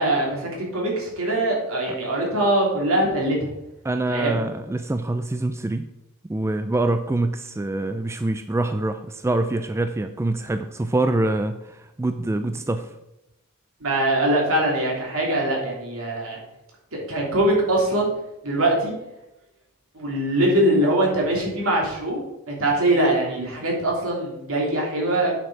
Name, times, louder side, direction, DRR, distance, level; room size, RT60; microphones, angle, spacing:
voice 1, 0.0-3.5 4.1-4.4 13.8-16.4 16.9-18.1 18.4-18.9 19.9-22.2 22.5-25.3, right 1 dB, 65° right, -2 dB, 3.0 m, -22 dB
voice 2, 3.8-5.9 6.3-13.0, right 2 dB, 10° right, 9 dB, 0.3 m, -25 dB
8.9 x 6.5 x 4.7 m, 0.90 s
head